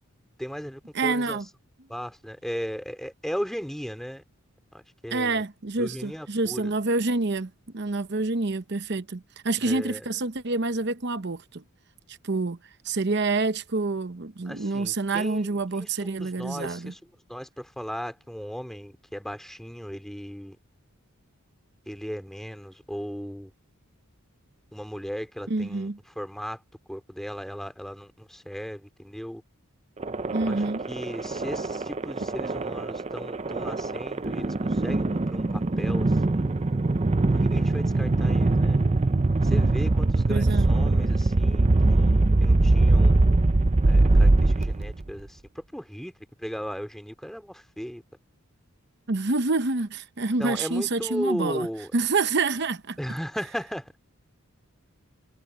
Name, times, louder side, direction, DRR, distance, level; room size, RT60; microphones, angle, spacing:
voice 1, 0.4-1.4 1.9-4.2 4.7-5.4 5.8-6.7 9.6-10.1 14.5-15.5 15.7-17.0 17.3-20.6 21.9-23.5 24.7-25.9 26.2-26.6 26.9-29.4 30.4-36.6 37.3-38.8 39.4-43.2 43.8-46.1 46.4-48.0 50.4-51.9 53.0-53.9, equal, ahead, 2.5 m, -36 dB
voice 2, 0.9-1.5 5.1-11.6 12.1-12.6 12.8-16.9 25.5-26.0 30.3-30.8 40.3-40.7 49.1-51.7 51.9-53.0, right 3 dB, 55° right, 0.9 m, -27 dB
sound 1, 30.0-45.1, right 2 dB, 30° right, 0.5 m, -22 dB
head